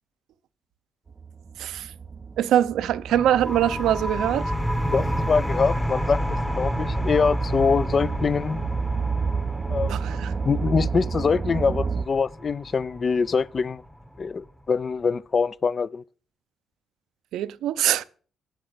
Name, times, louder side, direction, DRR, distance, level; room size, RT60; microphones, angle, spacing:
sound 1, 1.1-12.1, right 5 dB, 35° right, 0.4 m, -31 dB
voice 1, 2.4-4.5 9.9-10.3 17.3-18.0, right 11 dB, 80° right, 0.6 m, -23 dB
sound 2, 3.1-14.5, equal, 5° left, 0.9 m, -30 dB
voice 2, 4.9-6.2 6.5-8.6 9.7-9.9 10.4-13.8 14.2-16.0, left 5 dB, 40° left, 0.4 m, -24 dB
8.2 x 7.6 x 8.0 m
cardioid pair, 90°, 0 cm